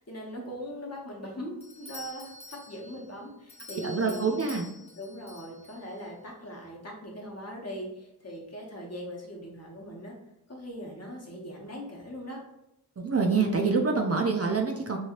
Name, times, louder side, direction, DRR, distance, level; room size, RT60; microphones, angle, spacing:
voice 1, 0.0-4.4 5.0-10.2 10.5-12.4, equal, 40° left, -2 dB, 0.9 m, -40 dB
Doorbell, 1.6-6.1, left 2 dB, 15° left, 0.6 m, -48 dB
voice 2, 3.8-4.7 13.0-15.0, right 4 dB, 40° right, 2 dB, 0.4 m, -26 dB
3.0 x 2.7 x 2.8 m, 0.85 s
wide cardioid pair, 65°, 38 cm